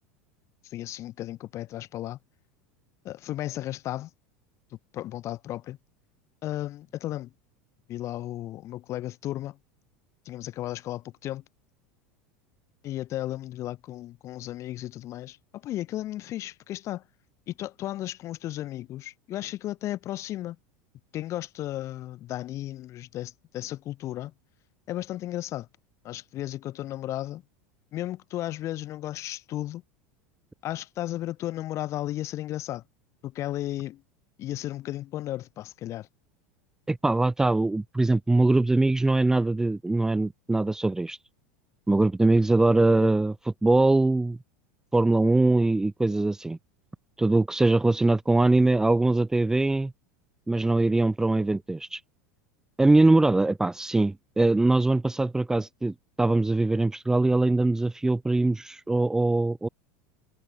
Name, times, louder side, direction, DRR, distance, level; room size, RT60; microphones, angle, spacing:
voice 1, 0.6-2.2 3.0-4.1 4.9-5.8 6.4-7.3 7.9-9.6 10.2-11.4 12.8-17.0 17.5-20.6 21.1-24.3 24.9-25.7 26.0-27.4 27.9-29.8 30.6-32.8 33.2-34.0 34.4-36.1, left 14 dB, 45° left, 6.5 m, -34 dB
voice 2, 36.9-41.2 41.9-44.4 44.9-46.6 47.2-49.9 50.5-52.0 52.8-59.7, right 2 dB, 10° right, 0.9 m, -22 dB
supercardioid pair, 110°, 7 cm